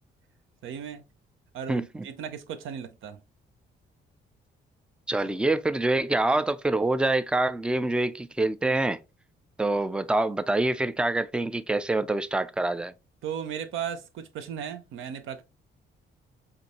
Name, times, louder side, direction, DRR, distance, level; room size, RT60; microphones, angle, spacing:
voice 1, 0.6-1.0 1.5-3.2 5.2-5.3 13.2-15.4, right 8 dB, 85° right, 0.7 m, -36 dB
voice 2, 1.7-2.1 5.1-9.0 9.6-12.9, right 2 dB, 5° right, 0.4 m, -26 dB
5.2 x 2.6 x 2.9 m
cardioid pair, 90°, 20 cm